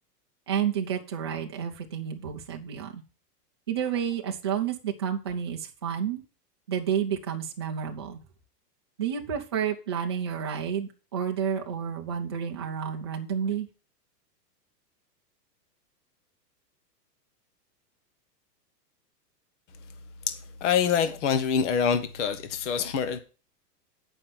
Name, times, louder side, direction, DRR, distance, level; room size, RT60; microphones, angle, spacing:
voice 1, 0.5-3.0 3.7-6.2 6.7-8.2 9.0-13.7, right 8 dB, 15° right, 0.5 m, -30 dB
voice 2, 20.6-23.2, left 7 dB, 45° left, 1.1 m, -25 dB
9.2 x 5.4 x 5.9 m
supercardioid pair, 175°, 49 cm